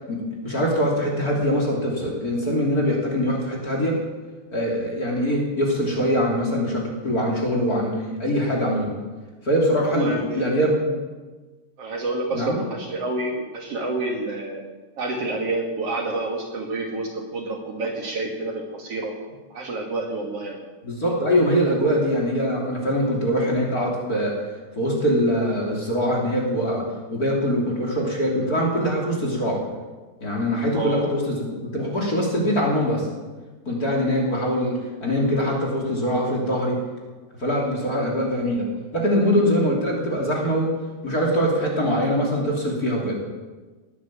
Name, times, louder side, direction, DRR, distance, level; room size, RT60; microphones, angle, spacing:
voice 1, 0.1-4.0 4.5-8.9 9.4-10.9 12.3-12.6 20.8-24.4 24.7-26.8 27.1-29.6 30.2-33.1 33.6-36.8 37.4-38.7 38.9-40.7 41.0-43.1, equal, 30° left, -1 dB, 3.3 m, -23 dB
voice 2, 9.9-10.6 11.8-14.6 15.0-19.1 19.5-20.6 30.7-31.1, right 2 dB, 50° right, 1 dB, 2.7 m, -28 dB
20.0 x 9.7 x 7.5 m, 1.3 s
omnidirectional pair, 3.7 m